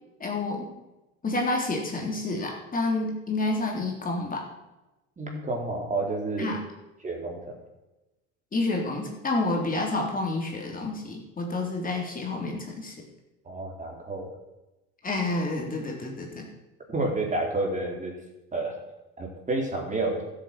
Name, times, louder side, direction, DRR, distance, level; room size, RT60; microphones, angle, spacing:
voice 1, 0.2-0.7 1.2-4.4 6.4-6.6 8.5-12.9 15.0-16.5, left 2 dB, 25° left, 0 dB, 3.6 m, -29 dB
voice 2, 5.2-6.6 7.0-7.4 13.5-14.3 16.9-18.1 18.5-18.7 19.2-20.2, right 2 dB, 20° right, 1 dB, 4.1 m, -29 dB
13.0 x 8.3 x 7.8 m, 0.99 s
hypercardioid pair, 85°, 34 cm